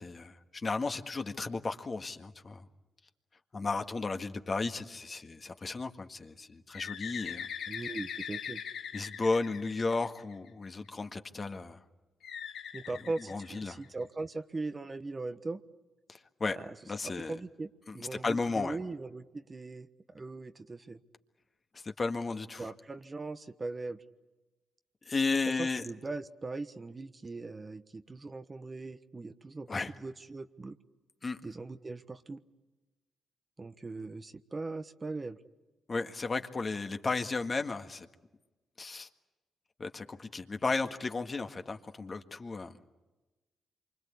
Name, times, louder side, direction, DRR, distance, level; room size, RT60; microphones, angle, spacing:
voice 1, 0.0-2.7 3.5-7.5 8.9-11.8 13.3-13.8 16.1-16.6 16.9-17.3 17.9-18.8 21.8-22.7 25.1-25.8 29.7-29.9 31.2-31.4 35.9-38.1 38.8-39.1 39.8-42.7, left 3 dB, 40° left, 6 dB, 1.7 m, -34 dB
Bird, 6.7-10.5 12.2-14.0, left 8 dB, 75° left, 1.7 m, -41 dB
voice 2, 7.7-8.6 12.7-15.6 16.6-16.7 17.0-21.0 22.6-24.0 25.5-29.7 30.0-30.8 31.4-32.4 33.6-35.4, right 3 dB, 35° right, 10 dB, 1.3 m, -40 dB
27.0 x 25.0 x 8.4 m, 1.1 s
hypercardioid pair, 45°, 0 cm